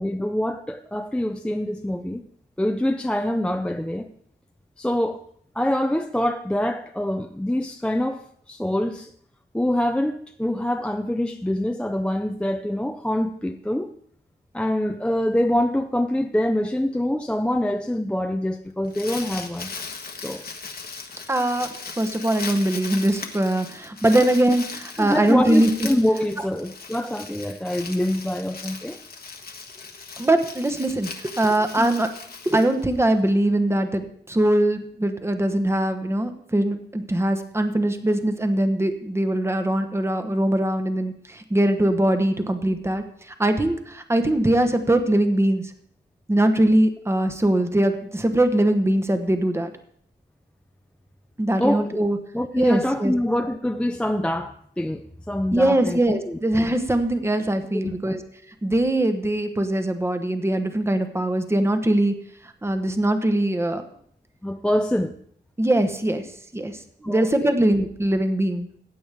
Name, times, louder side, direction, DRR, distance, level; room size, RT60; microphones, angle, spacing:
voice 1, 0.0-2.2 2.6-4.1 4.8-5.2 5.6-8.2 8.5-9.1 9.5-13.9 14.5-19.7 20.2-20.4 24.2-24.3 25.0-29.0 31.8-31.9 51.6-51.9 52.3-56.4 57.8-58.2 64.4-65.1 67.0-67.5, left 1 dB, 5° left, 6 dB, 0.4 m, -25 dB
Crumpling crinkling, 18.7-33.3, left 4 dB, 55° left, 1.2 m, -38 dB
voice 2, 21.3-25.9 26.4-26.5 30.2-32.1 32.4-45.7 46.3-49.7 51.4-52.2 52.6-53.1 55.5-58.2 58.6-62.2 62.6-63.8 65.6-66.3 66.5-68.7, right 1 dB, 15° right, 7 dB, 1.0 m, -22 dB
15.5 x 8.8 x 3.5 m, 0.64 s
wide cardioid pair, 125°, 18 cm